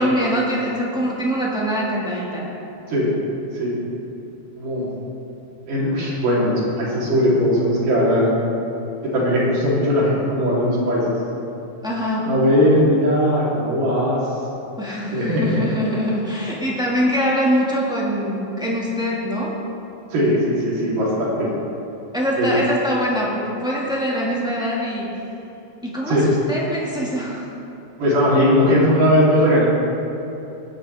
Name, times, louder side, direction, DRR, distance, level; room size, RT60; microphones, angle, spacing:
voice 1, 0.0-2.5 11.8-12.3 14.8-19.5 22.1-25.1 25.8-27.5, equal, 5° right, -5 dB, 0.6 m, -23 dB
voice 2, 4.6-4.9 5.7-8.4 9.1-11.1 12.2-14.2 14.9-15.6 20.1-21.5 22.4-22.5 26.1-26.3 28.0-29.7, equal, 70° right, -7 dB, 4.7 m, -19 dB
18.5 x 10.0 x 3.4 m, 2.9 s
omnidirectional pair, 3.8 m